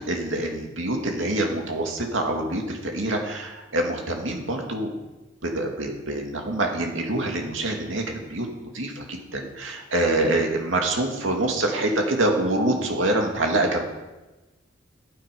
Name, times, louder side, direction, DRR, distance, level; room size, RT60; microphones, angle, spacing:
voice 1, 0.1-4.9 5.4-13.8, right 1 dB, 85° right, 1 dB, 2.4 m, -25 dB
13.0 x 9.0 x 5.3 m, 1.1 s
head